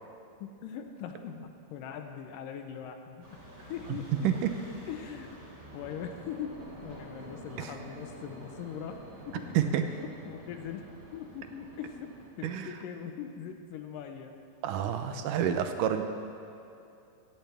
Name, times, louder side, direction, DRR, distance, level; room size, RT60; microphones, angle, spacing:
voice 1, 0.4-4.3 4.9-5.3 5.7-9.0 9.3-9.5 9.9-10.9 11.1-12.1 12.4-14.3, left 8 dB, 85° left, 6 dB, 2.6 m, -41 dB
sound 1, 3.2-12.3, right 1 dB, 20° right, 2.4 m, -48 dB
voice 2, 14.6-16.0, right 9 dB, 80° right, 7 dB, 2.2 m, -28 dB
17.5 x 14.5 x 3.5 m, 2.8 s
omnidirectional pair, 3.8 m